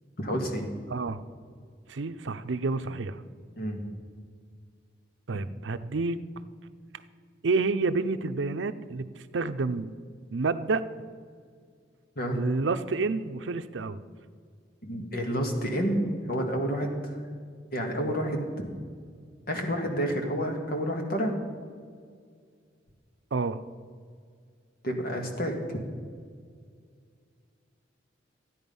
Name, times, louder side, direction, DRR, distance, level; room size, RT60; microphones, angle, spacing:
voice 1, 0.2-0.7 3.6-3.8 12.2-12.4 14.8-17.2 17.7-18.4 19.5-21.4 24.8-25.8, equal, 55° left, 2 dB, 1.9 m, -29 dB
voice 2, 0.9-1.2 1.9-3.2 5.3-6.2 7.4-9.1 9.3-9.9 10.3-10.8 12.3-14.0 23.3-23.6, right 3 dB, 85° right, 12 dB, 0.6 m, -29 dB
14.5 x 9.7 x 5.4 m, 2.1 s
head